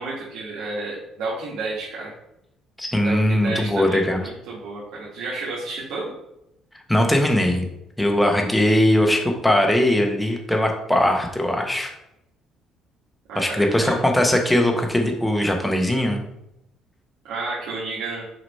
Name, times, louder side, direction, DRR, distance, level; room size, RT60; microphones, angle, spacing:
voice 1, 0.0-2.1 3.0-6.0 13.3-14.0 17.2-18.2, right 3 dB, 85° right, -8 dB, 1.7 m, -31 dB
voice 2, 2.8-4.2 6.9-7.6 8.0-11.9 13.3-16.2, left 1 dB, 5° left, 3 dB, 0.9 m, -20 dB
6.2 x 3.0 x 5.4 m, 0.84 s
cardioid pair, 140°, 0 cm